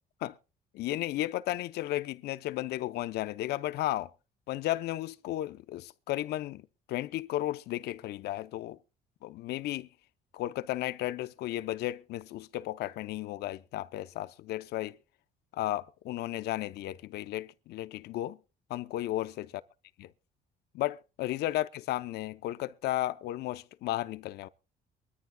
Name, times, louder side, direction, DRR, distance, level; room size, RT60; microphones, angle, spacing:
voice 1, 0.7-4.1 4.5-6.6 6.9-8.8 9.2-9.9 10.3-15.0 15.5-18.4 18.7-19.5 20.0-20.1 20.7-24.5, left 15 dB, 75° left, 0.6 m, -34 dB
23.0 x 14.0 x 2.2 m
cardioid pair, 110°, 17 cm